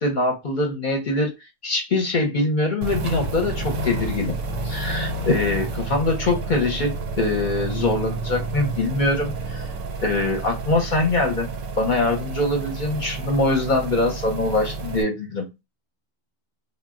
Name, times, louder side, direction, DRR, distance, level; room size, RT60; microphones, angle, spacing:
voice 1, 0.0-1.3 1.6-4.3 4.6-9.7 10.0-15.5, left 2 dB, 50° left, 0.7 m, -23 dB
sound 1, 2.8-15.0, right 2 dB, 90° right, 1.0 m, -30 dB
2.2 x 2.1 x 3.5 m
omnidirectional pair, 1.3 m